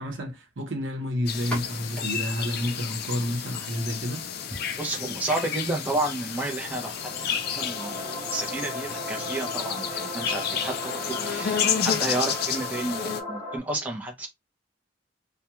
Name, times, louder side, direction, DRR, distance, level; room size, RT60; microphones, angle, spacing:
voice 1, 0.0-4.3, equal, 80° right, 0.8 m, -30 dB
sound 1, 1.3-13.2, left 8 dB, 55° left, 0.4 m, -31 dB
sound 2, 1.3-8.8, equal, 5° left, 1.0 m, -46 dB
voice 2, 4.8-14.3, right 2 dB, 10° right, 0.6 m, -31 dB
sound 3, 6.4-13.6, left 1 dB, 40° right, 1.2 m, -36 dB
2.3 x 2.2 x 2.9 m
head